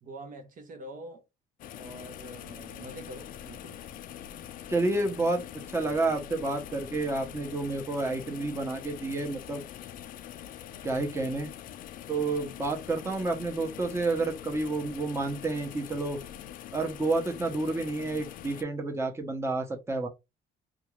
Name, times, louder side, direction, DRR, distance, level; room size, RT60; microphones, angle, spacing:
voice 1, 0.0-1.2 1.8-3.8, right 2 dB, 50° right, 0.8 m, -45 dB
sound 1, 1.6-18.6, left 10 dB, 55° left, 0.4 m, -44 dB
voice 2, 4.7-5.4 5.7-9.6 10.8-11.5 12.1-16.2 16.7-20.1, right 2 dB, 15° right, 0.8 m, -30 dB
2.5 x 2.4 x 3.0 m
cardioid pair, 110°, 17 cm